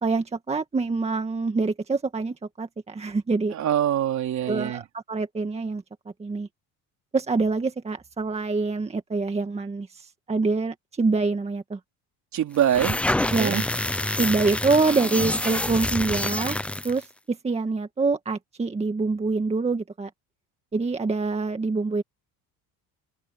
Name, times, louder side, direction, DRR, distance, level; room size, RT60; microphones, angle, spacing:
voice 1, 0.0-3.5 4.4-5.8 6.2-6.5 7.1-11.8 13.3-13.6 14.2-16.6 16.8-20.1 20.7-22.0, right 3 dB, 15° right, 1.8 m, -25 dB
voice 2, 3.5-4.8 12.3-12.9 13.4-13.6, right 11 dB, 50° right, 3.6 m, -24 dB
sound 1, 12.6-17.0, left 1 dB, 5° left, 0.5 m, -27 dB
cardioid pair, 135°, 37 cm